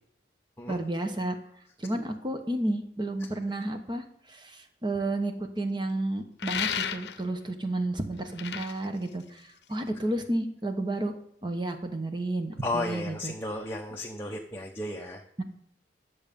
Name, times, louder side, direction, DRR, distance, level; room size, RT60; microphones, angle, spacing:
voice 1, 0.7-1.3 1.8-11.1 11.4-13.3 15.4-15.5, right 1 dB, 25° right, 6 dB, 1.0 m, -31 dB
sound 1, 6.4-7.4 8.2-9.9, left 8 dB, 70° left, 0.6 m, -33 dB
voice 2, 12.6-15.2, left 2 dB, 15° left, -1 dB, 0.7 m, -34 dB
10.5 x 7.1 x 5.2 m, 0.69 s
head